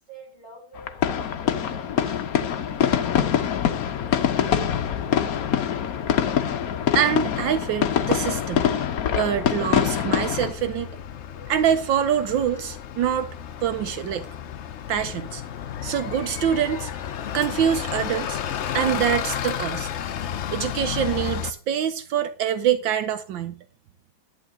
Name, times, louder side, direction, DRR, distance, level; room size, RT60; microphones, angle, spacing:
voice 1, 0.1-2.3, right 2 dB, 20° left, 6.1 m, -46 dB
sound 1, 0.8-10.5, left 9 dB, 55° left, 1.2 m, -24 dB
Bus, 2.7-21.5, left 9 dB, 85° left, 0.6 m, -34 dB
voice 2, 6.9-8.7 9.1-10.9 11.5-13.3 13.6-14.3 14.9-15.4 15.8-16.9 17.3-18.4 18.7-19.9 20.5-23.6, right 9 dB, 75° right, 1.4 m, -25 dB
11.0 x 10.0 x 3.7 m
omnidirectional pair, 2.1 m